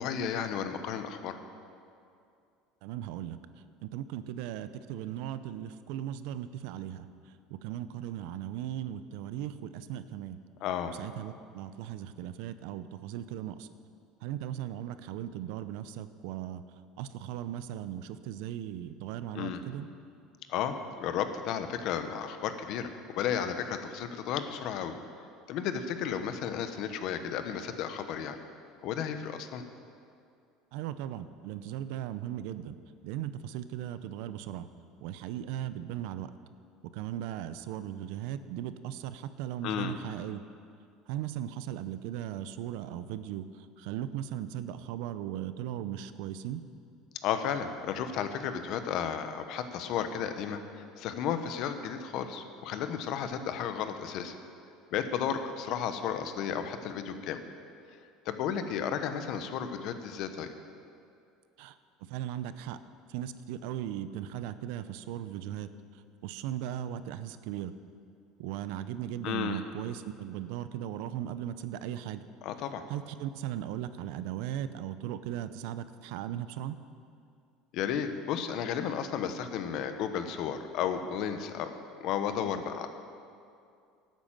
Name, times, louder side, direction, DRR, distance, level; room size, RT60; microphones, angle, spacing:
voice 1, 0.0-1.4 10.6-10.9 19.3-19.6 20.5-24.9 25.5-28.4 28.8-29.6 39.6-39.9 47.2-54.3 54.9-57.4 58.2-60.5 69.2-69.6 72.4-72.8 77.7-81.7 82.0-82.9, left 8 dB, 60° left, 9 dB, 1.0 m, -33 dB
voice 2, 2.8-3.4 3.8-7.1 7.5-10.4 11.0-13.7 14.2-16.6 17.0-19.9 30.7-32.8 33.0-34.7 35.0-36.3 36.9-40.4 41.1-46.6 61.6-61.8 62.1-62.8 63.1-65.7 66.2-67.7 68.4-72.2 72.9-76.8, right 11 dB, 75° right, 13 dB, 0.6 m, -37 dB
12.0 x 9.2 x 7.5 m, 2.4 s
supercardioid pair, 125°, 0 cm